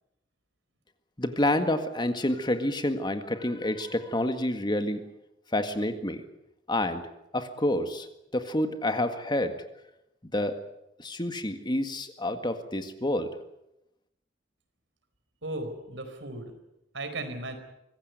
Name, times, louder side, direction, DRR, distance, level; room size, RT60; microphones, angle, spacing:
voice 1, 1.2-5.0 5.5-6.2 6.7-7.0 7.3-8.1 8.3-9.5 10.3-10.6 11.0-13.3, left 1 dB, 25° left, 8 dB, 1.8 m, -28 dB
voice 2, 15.4-16.5 16.9-17.6, right 2 dB, 85° right, 8 dB, 4.6 m, -36 dB
24.5 x 15.5 x 9.6 m, 0.86 s
head